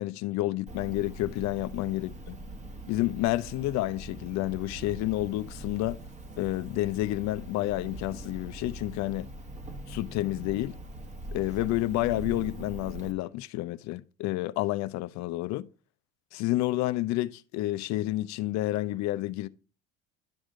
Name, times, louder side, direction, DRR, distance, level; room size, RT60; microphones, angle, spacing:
voice 1, 0.0-2.4 2.9-6.0 6.4-9.3 9.9-10.7 11.3-15.7 16.3-19.5, left 17 dB, 65° left, 0.7 m, -30 dB
Cricket, 0.7-13.1, right 1 dB, 25° right, 1.3 m, -42 dB
11.5 x 5.0 x 3.7 m
supercardioid pair, 90°, 30 cm